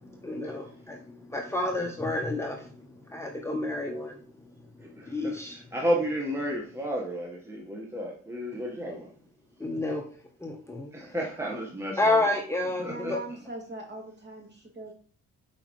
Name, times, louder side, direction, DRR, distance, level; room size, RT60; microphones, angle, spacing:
voice 1, 0.2-2.7 3.1-4.2 5.0-5.6 9.6-10.0 10.4-10.9 12.0-13.2, left 2 dB, 10° left, 0.9 m, -29 dB
voice 2, 4.8-9.1 10.9-12.3 12.8-13.2, equal, 10° right, 1.3 m, -32 dB
voice 3, 12.9-14.9, right 2 dB, 35° right, 2.3 m, -41 dB
6.7 x 5.0 x 3.1 m
cardioid pair, 90°, 30 cm